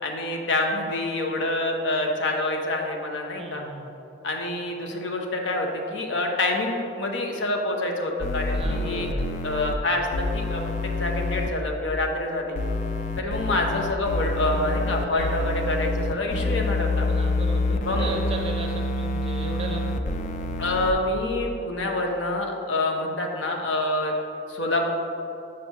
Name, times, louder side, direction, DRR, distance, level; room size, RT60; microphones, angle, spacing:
voice 1, 0.0-3.6 4.2-9.1 9.4-12.6 13.2-17.1 17.8-18.1 20.6-24.1 24.5-24.9, left 2 dB, 70° left, 1 dB, 0.7 m, -27 dB
voice 2, 3.4-3.9 8.5-9.3 15.1-15.4 17.1-19.9, right 2 dB, 30° right, 1 dB, 0.6 m, -35 dB
sound 1, 8.2-9.8 10.1-11.5 12.6-20.9, left 2 dB, 40° left, 0.3 m, -27 dB
6.4 x 2.9 x 5.6 m, 2.7 s
head